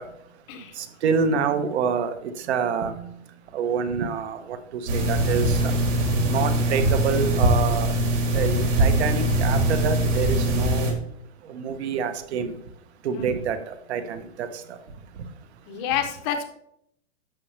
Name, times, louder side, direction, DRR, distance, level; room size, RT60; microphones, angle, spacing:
voice 1, 0.8-3.0 3.5-4.6 4.9-5.7 6.3-7.9 8.3-10.9 11.5-12.5 13.0-14.8, right 6 dB, 60° right, 9 dB, 1.2 m, -27 dB
sound 1, 4.9-10.9, right 1 dB, 75° right, 4.3 m, -22 dB
voice 2, 15.7-16.4, left 9 dB, 20° left, 7 dB, 0.7 m, -28 dB
11.0 x 7.5 x 3.3 m, 0.72 s
supercardioid pair, 175°, 37 cm